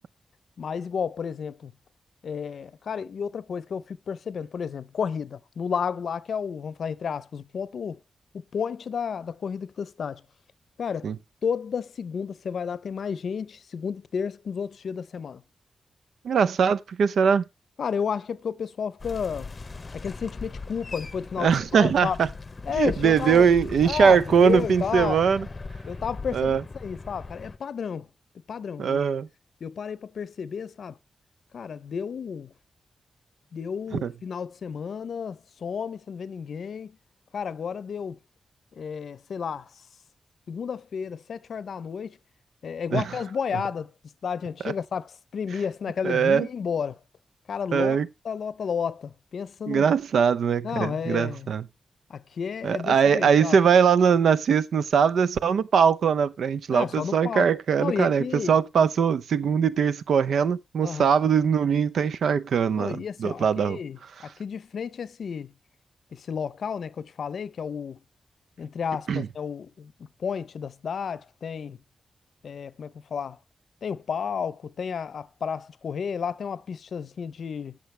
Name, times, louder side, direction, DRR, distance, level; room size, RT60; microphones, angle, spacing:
voice 1, 0.6-1.7 2.2-8.0 8.3-10.2 10.8-11.1 11.4-15.4 17.8-19.5 19.9-22.2 22.7-23.5 23.8-25.3 25.9-28.1 28.5-29.0 29.6-31.0 31.5-32.5 33.5-37.0 37.3-38.2 38.8-39.7 40.5-42.2 42.6-43.9 44.2-47.0 47.5-48.0 48.2-49.9 50.6-51.5 52.1-53.6 56.7-57.5 57.8-58.6 60.8-61.1 62.8-65.5 66.1-68.0 68.6-69.9 70.2-71.8 72.4-73.4 73.8-77.8, left 6 dB, 60° left, 0.6 m, -32 dB
voice 2, 16.2-17.4 21.4-22.3 22.7-25.5 26.3-26.6 28.8-29.3 34.0-34.1 42.9-43.0 46.0-46.5 47.7-48.1 49.7-51.6 52.6-63.8 69.1-69.3, right 7 dB, 90° right, 0.7 m, -21 dB
sound 1, 19.0-27.6, left 3 dB, 25° left, 0.7 m, -39 dB
16.5 x 6.5 x 3.2 m
wide cardioid pair, 180°, 0 cm